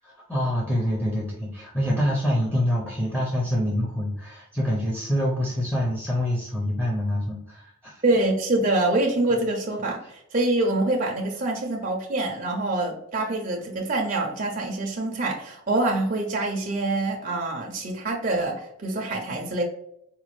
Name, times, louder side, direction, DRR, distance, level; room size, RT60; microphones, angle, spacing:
voice 1, 0.0-8.0, equal, 5° left, -4 dB, 0.5 m, -26 dB
voice 2, 8.0-19.6, right 2 dB, 40° right, -1 dB, 0.5 m, -25 dB
4.1 x 2.2 x 3.1 m, 0.78 s
head